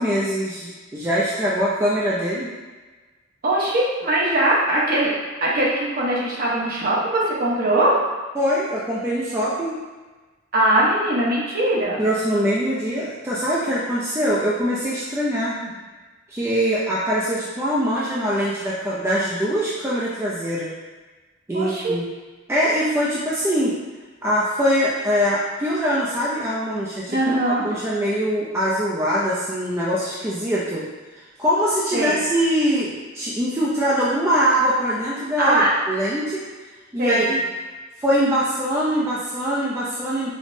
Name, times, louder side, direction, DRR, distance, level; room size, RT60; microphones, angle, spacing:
voice 1, 0.0-2.5 8.4-9.8 12.0-15.6 16.3-20.7 21.5-22.0 22.5-23.7 24.2-27.2 27.5-30.8 31.1-35.6 35.9-36.4 36.9-37.4 38.0-40.3, equal, 15° right, -7 dB, 0.4 m, -23 dB
voice 2, 3.4-5.1 5.4-8.0 10.5-12.0 15.6-15.7 21.5-22.0 27.1-27.7 31.9-32.2 35.4-35.7 37.0-37.3, right 1 dB, 45° right, -6 dB, 0.9 m, -21 dB
5.1 x 2.0 x 2.6 m, 1.3 s
head